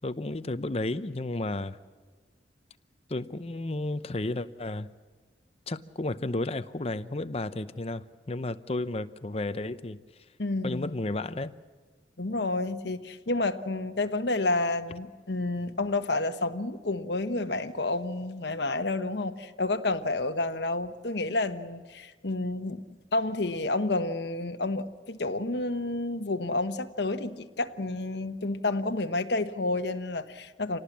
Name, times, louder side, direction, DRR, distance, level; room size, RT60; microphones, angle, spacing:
voice 1, 0.0-1.8 3.1-4.9 5.7-10.0 10.6-11.5, left 2 dB, 35° left, 0.7 m, -32 dB
voice 2, 10.4-10.9 12.2-22.8 23.1-30.8, left 2 dB, 70° left, 1.2 m, -30 dB
26.5 x 18.5 x 7.4 m
head